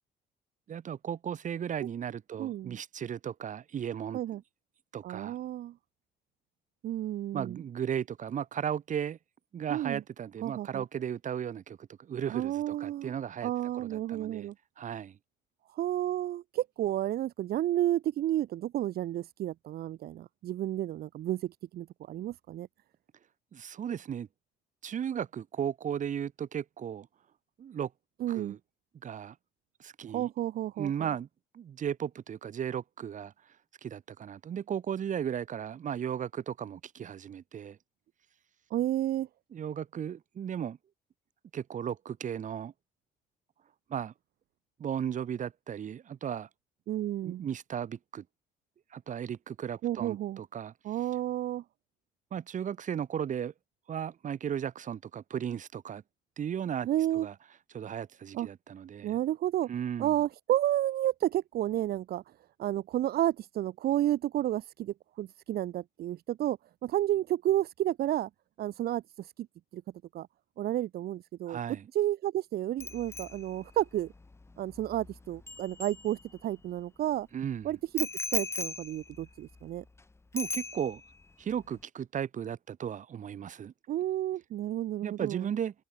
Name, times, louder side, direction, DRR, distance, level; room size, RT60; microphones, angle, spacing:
voice 1, 0.7-4.2 4.9-5.4 7.3-9.2 9.5-14.5 14.8-15.2 23.5-24.3 24.8-27.1 27.6-27.9 28.3-28.6 29.0-29.4 29.8-30.3 30.8-31.3 31.5-33.3 33.8-37.8 39.5-40.8 41.5-42.7 43.9-44.1 44.8-46.5 47.2-48.2 48.9-50.7 52.3-53.5 53.9-56.0 56.4-56.9 57.1-57.3 57.7-59.2 59.7-60.1 71.5-71.9 77.3-77.7 80.3-81.0 81.4-83.7 85.0-85.8, right 8 dB, 50° right, 7.0 m, -35 dB
voice 2, 2.4-2.8 4.1-4.4 5.0-5.7 6.8-7.6 9.7-10.0 10.4-10.8 12.3-13.1 13.4-14.5 15.7-22.7 28.2-28.6 30.1-30.9 38.7-39.3 46.9-47.4 49.8-50.4 50.8-51.6 56.9-57.3 58.3-58.5 59.0-59.7 60.0-62.2 62.6-68.3 68.6-69.3 69.7-69.8 70.1-70.3 70.6-71.6 71.9-74.1 74.6-77.3 77.6-79.8 83.9-85.5, right 13 dB, 65° right, 2.8 m, -31 dB
Bicycle bell, 72.8-76.6 78.0-80.0 80.4-81.2 81.5-81.8, left 3 dB, 15° left, 2.2 m, -39 dB
open air
cardioid pair, 110°, 17 cm